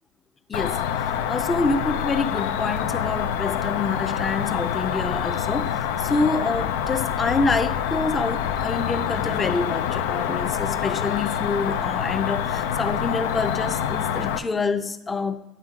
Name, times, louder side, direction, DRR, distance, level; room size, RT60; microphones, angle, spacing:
Cricket, 0.5-14.4, left 9 dB, 80° left, 0.4 m, -26 dB
voice 1, 0.5-15.4, left 3 dB, 25° left, 0.6 m, -27 dB
9.8 x 9.0 x 2.5 m
hypercardioid pair, 85°, 0 cm